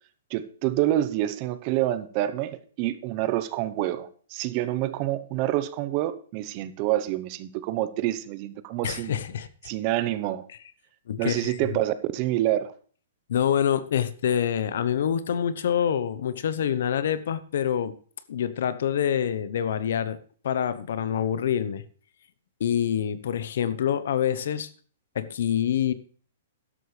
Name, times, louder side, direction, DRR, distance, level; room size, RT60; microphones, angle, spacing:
voice 1, 0.3-9.2 9.6-10.5 11.2-12.7, right 14 dB, 40° right, 0.9 m, -27 dB
voice 2, 8.8-9.5 11.1-11.8 13.3-18.0 18.3-20.2 20.4-21.8 22.6-24.7 25.1-25.9, left 9 dB, 70° left, 1.0 m, -26 dB
12.5 x 11.0 x 3.4 m
hypercardioid pair, 130°, 0 cm